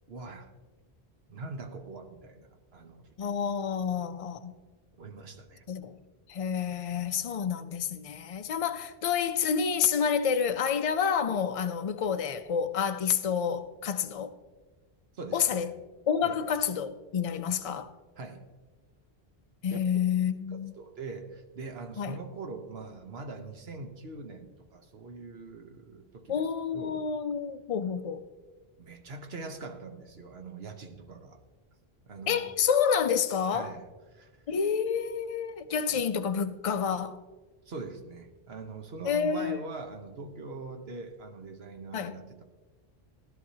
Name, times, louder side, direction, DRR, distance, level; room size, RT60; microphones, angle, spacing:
voice 1, 0.1-0.5 1.3-3.1 5.0-5.6 15.1-15.7 16.2-16.4 18.2-18.5 19.7-19.8 20.8-27.1 28.8-31.4 32.1-32.5 33.5-34.3 35.9-36.1 37.7-42.4, right 3 dB, 75° right, 1.3 m, -42 dB
voice 2, 3.2-4.5 5.7-6.0 6.3-14.3 15.3-15.7 16.1-17.9 19.6-20.7 22.0-22.2 26.3-28.2 32.3-33.7 34.5-37.2 39.0-39.6 41.9-42.1, left 7 dB, 40° left, 0.5 m, -29 dB
16.0 x 11.5 x 2.8 m
omnidirectional pair, 1.1 m